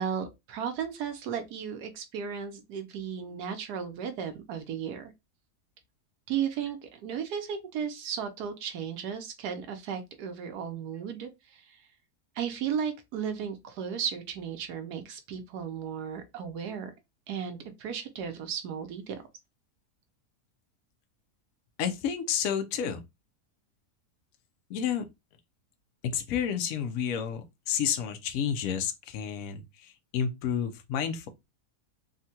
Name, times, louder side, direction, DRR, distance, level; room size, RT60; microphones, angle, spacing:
voice 1, 0.0-5.1 6.3-11.9 12.4-16.9 17.3-19.2, right 7 dB, 75° right, 1.2 m, -35 dB
voice 2, 21.8-23.0 24.7-25.0 26.0-31.3, left 8 dB, 70° left, 0.9 m, -30 dB
3.6 x 2.2 x 2.7 m
omnidirectional pair, 1.7 m